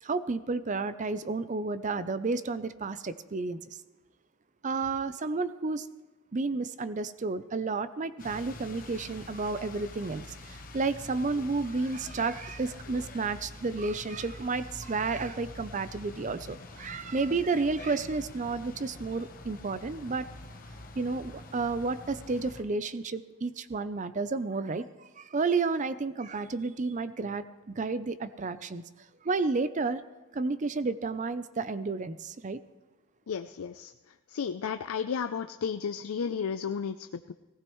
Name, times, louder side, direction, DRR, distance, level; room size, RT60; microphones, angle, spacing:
voice 1, 0.0-3.6 4.6-5.9 6.3-20.3 21.0-27.4 27.7-28.8 29.2-30.0 30.3-32.6, right 3 dB, 35° right, 13 dB, 0.5 m, -31 dB
sound 1, 8.2-22.6, left 2 dB, 40° left, 1.0 m, -46 dB
voice 2, 33.3-33.9 34.3-37.3, left 6 dB, 80° left, 9 dB, 0.5 m, -33 dB
18.5 x 16.5 x 3.1 m, 1.2 s
head